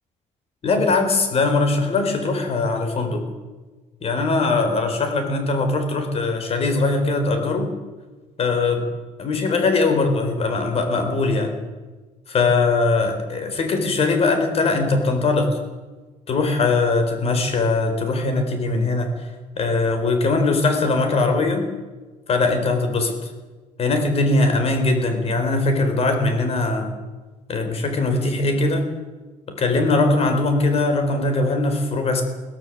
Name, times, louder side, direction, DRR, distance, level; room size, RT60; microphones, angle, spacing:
voice 1, 0.6-3.3 4.0-7.7 8.4-8.9 9.2-11.6 12.3-15.6 16.3-19.1 19.6-21.7 22.3-23.3 23.8-26.9 27.5-28.9 29.5-32.2, left 3 dB, 45° left, 6 dB, 4.5 m, -21 dB
22.5 x 16.5 x 7.7 m, 1.3 s
cardioid pair, 130°, 14 cm